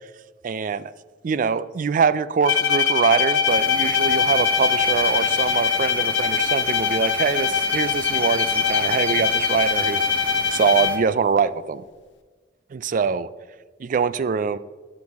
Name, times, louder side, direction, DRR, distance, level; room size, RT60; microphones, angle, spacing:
voice 1, 0.4-0.9 1.2-10.1 10.5-11.8 12.7-13.3 13.8-14.6, right 6 dB, 45° right, 17 dB, 0.3 m, -23 dB
Bowed string instrument, 2.4-11.2, left 6 dB, 80° left, 0.7 m, -22 dB
sound 1, 3.5-11.0, left 2 dB, 10° left, 0.8 m, -38 dB
12.5 x 6.0 x 3.5 m, 1.4 s
head